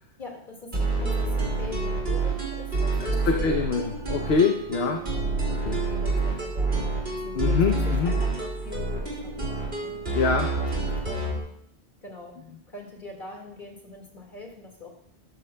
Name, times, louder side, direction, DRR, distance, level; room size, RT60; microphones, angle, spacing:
voice 1, 0.2-4.0 4.9-5.3 5.9-6.9 7.2-10.1 10.4-10.7 11.0-11.4 12.0-12.4 12.7-14.9, left 2 dB, 45° left, 1 dB, 2.1 m, -43 dB
sound 1, 0.7-11.4, right 3 dB, 60° right, 2.7 m, -27 dB
voice 2, 3.0-5.0 5.5-5.8 7.3-8.1 10.1-10.5, left 5 dB, 70° left, 4 dB, 1.0 m, -25 dB
13.0 x 12.5 x 2.2 m, 0.72 s
omnidirectional pair, 1.1 m